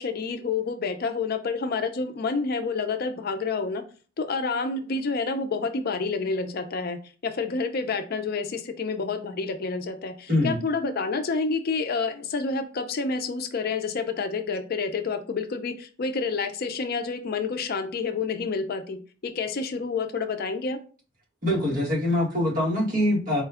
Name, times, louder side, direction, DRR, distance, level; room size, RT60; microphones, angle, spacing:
voice 1, 0.0-3.8 4.2-20.8, left 4 dB, 55° left, 7 dB, 0.5 m, -29 dB
voice 2, 21.4-23.4, left 1 dB, 45° right, -3 dB, 1.4 m, -24 dB
4.3 x 2.3 x 3.3 m, 0.38 s
head